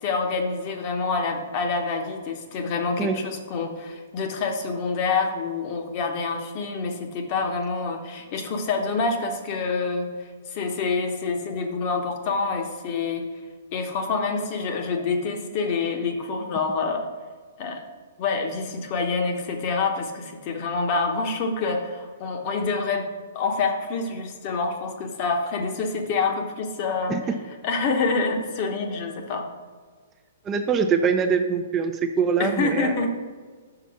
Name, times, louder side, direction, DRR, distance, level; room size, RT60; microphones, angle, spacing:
voice 1, 0.0-10.1 10.5-13.3 13.7-17.1 17.6-17.8 18.2-23.1 23.3-27.4 27.6-29.5 32.4-33.1, left 4 dB, 40° left, 4 dB, 1.0 m, -27 dB
voice 2, 30.5-31.9 32.2-32.9, right 6 dB, 20° right, 6 dB, 0.5 m, -23 dB
5.9 x 4.2 x 5.8 m, 1.6 s
hypercardioid pair, 135°, 0 cm